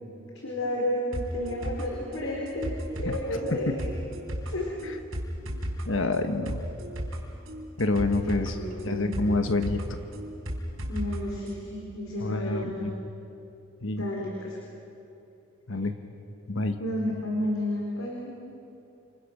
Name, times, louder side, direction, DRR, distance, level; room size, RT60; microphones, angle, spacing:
voice 1, 0.4-3.9 4.5-4.7 8.1-9.2 10.9-12.9 14.0-14.6 16.8-18.3, left 1 dB, 90° left, -2 dB, 4.1 m, -31 dB
sound 1, 1.1-11.2 11.5-11.6, equal, 85° right, 4.4 m, -35 dB
voice 2, 5.8-6.6 7.8-8.6 8.8-9.8 12.2-12.9 13.8-14.0 15.7-15.9 16.5-16.8, left 2 dB, 75° left, 7 dB, 1.3 m, -27 dB
30.0 x 27.5 x 6.1 m, 2.8 s
head